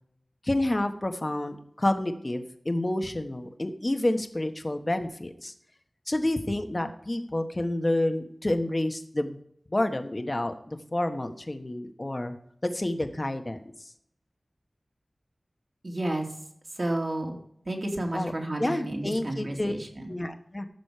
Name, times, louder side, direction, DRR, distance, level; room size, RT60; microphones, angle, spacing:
voice 1, 0.4-5.5 6.1-9.4 9.7-12.3 12.6-13.7 18.1-18.3 18.6-19.7 20.1-20.7, left 1 dB, 35° left, 7 dB, 1.4 m, -29 dB
voice 2, 15.8-16.3 16.7-17.4 17.7-20.1, right 1 dB, 60° right, 1 dB, 2.7 m, -31 dB
15.0 x 6.3 x 5.0 m, 0.69 s
wide cardioid pair, 45°, 0 cm